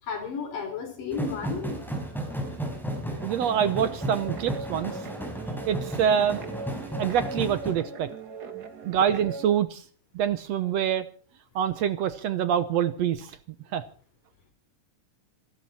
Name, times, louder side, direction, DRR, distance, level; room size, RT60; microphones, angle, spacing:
voice 1, 0.0-1.8 5.5-5.6, left 5 dB, 90° left, 5.7 m, -33 dB
sound 1, 1.1-7.7, right 1 dB, ahead, 4.7 m, -34 dB
voice 2, 3.2-4.9 5.7-6.4 7.0-8.1 8.8-9.8 10.2-11.1 11.6-13.3 13.7-13.8, right 9 dB, 65° right, 1.8 m, -25 dB
Guitar, 4.0-9.5, right 4 dB, 40° right, 1.6 m, -40 dB
27.0 x 12.5 x 4.3 m
omnidirectional pair, 3.7 m